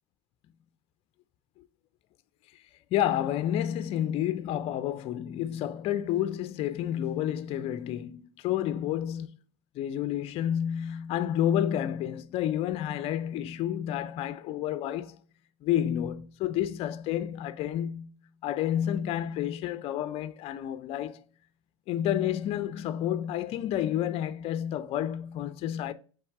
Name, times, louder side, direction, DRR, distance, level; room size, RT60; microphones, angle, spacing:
voice 1, 2.9-9.3 9.8-15.2 15.6-18.1 18.4-21.2 21.9-25.9, left 11 dB, 40° left, 0.4 m, -30 dB
4.4 x 3.3 x 3.5 m
hypercardioid pair, 105°, 15 cm